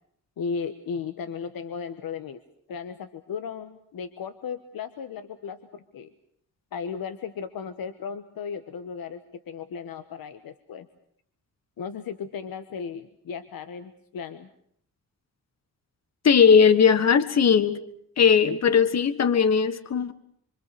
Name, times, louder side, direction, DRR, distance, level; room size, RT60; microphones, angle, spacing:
voice 1, 0.4-2.4 2.7-6.1 6.7-10.9 11.8-14.5, left 6 dB, 85° left, 9 dB, 1.3 m, -35 dB
voice 2, 16.2-17.8 18.2-20.1, left 6 dB, 50° left, 11 dB, 1.5 m, -18 dB
26.5 x 25.5 x 6.8 m, 0.67 s
wide cardioid pair, 160°, 34 cm